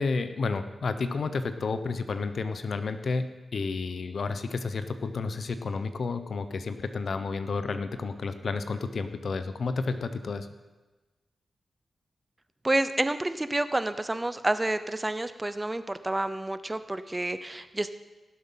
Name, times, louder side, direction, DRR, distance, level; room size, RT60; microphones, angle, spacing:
voice 1, 0.0-3.3 3.5-10.5, left 4 dB, 65° left, 10 dB, 0.9 m, -31 dB
voice 2, 12.6-17.9, right 2 dB, 20° right, 12 dB, 0.7 m, -29 dB
17.0 x 7.6 x 5.8 m, 1.2 s
cardioid pair, 75°, 0 cm